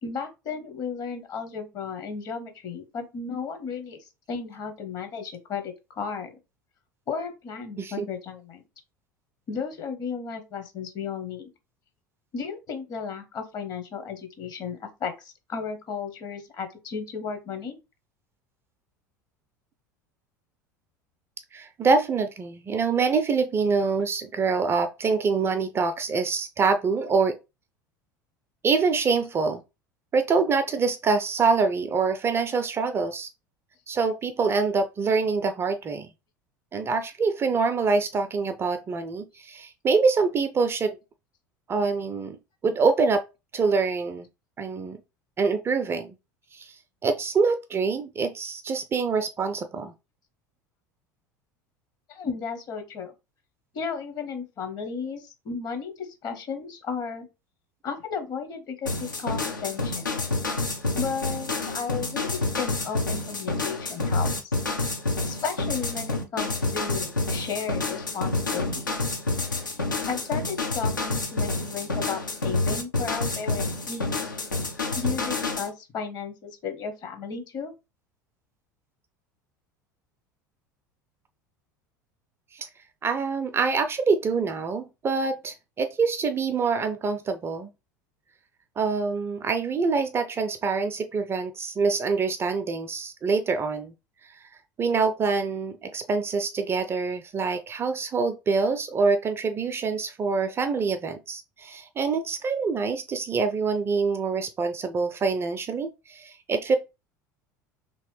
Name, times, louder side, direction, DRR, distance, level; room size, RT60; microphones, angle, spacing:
voice 1, 0.0-6.3 7.1-8.6 9.5-11.5 12.3-17.8 52.1-53.1 53.7-57.3 57.8-60.1 61.0-64.5 65.2-68.9 70.1-74.1 74.9-77.7, left 6 dB, 40° left, 0.8 m, -34 dB
voice 2, 21.5-27.4 28.6-29.6 30.1-33.3 33.9-36.1 36.7-41.0 41.7-42.4 42.6-43.2 43.5-44.3 44.6-45.0 45.4-46.1 46.5-46.7 47.0-49.9 82.5-82.7 83.0-87.7 88.8-93.9 94.8-106.8, right 4 dB, 25° right, 0.4 m, -25 dB
sound 1, 58.9-75.7, left 2 dB, 85° left, 0.6 m, -28 dB
3.0 x 2.8 x 3.2 m
figure-of-eight pair, 70°, 10 cm